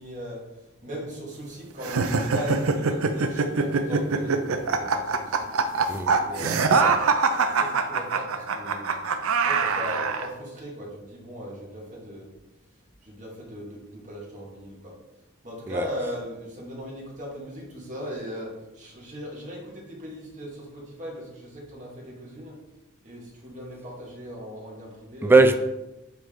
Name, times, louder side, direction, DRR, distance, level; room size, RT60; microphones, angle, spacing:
voice 1, 0.0-5.5 6.2-6.7 7.5-8.9 9.4-12.3 13.0-15.0 15.4-22.6 23.0-25.4, equal, 35° right, 1.8 m, -38 dB
sound 1, 1.8-10.3, right 4 dB, 90° right, 0.5 m, -24 dB
voice 2, 5.9-7.1 15.7-15.9 25.2-25.5, right 3 dB, 10° right, 0.4 m, -21 dB
7.9 x 3.4 x 3.8 m
head